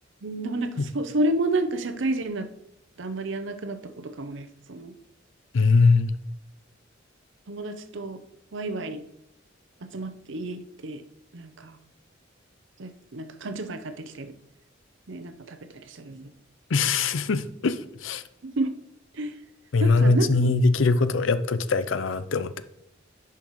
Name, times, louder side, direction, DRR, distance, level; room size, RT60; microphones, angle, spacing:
voice 1, 0.2-2.5 3.0-4.9 7.5-8.2 8.5-9.0 9.8-11.0 11.3-11.8 12.8-14.3 15.1-16.3 18.4-18.7 19.1-19.3 19.8-20.5, right 2 dB, 65° right, 10 dB, 0.7 m, -30 dB
voice 2, 5.5-6.2 16.7-18.2 19.7-22.6, left 3 dB, 70° left, 13 dB, 0.5 m, -22 dB
10.5 x 5.8 x 3.1 m, 0.78 s
head